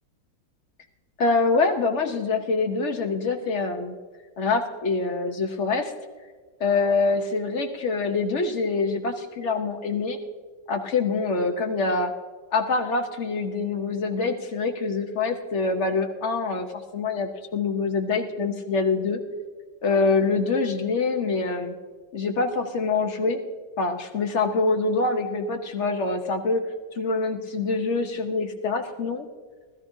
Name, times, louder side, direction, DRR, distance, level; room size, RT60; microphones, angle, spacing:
voice 1, 1.2-3.9 4.4-5.9 6.6-10.2 10.7-12.1 12.5-16.7 16.9-19.2 19.8-21.7 22.1-23.4 23.8-26.6 26.9-29.3, left 4 dB, 50° left, 4 dB, 1.0 m, -25 dB
19.5 x 13.0 x 2.7 m, 1.5 s
omnidirectional pair, 1.9 m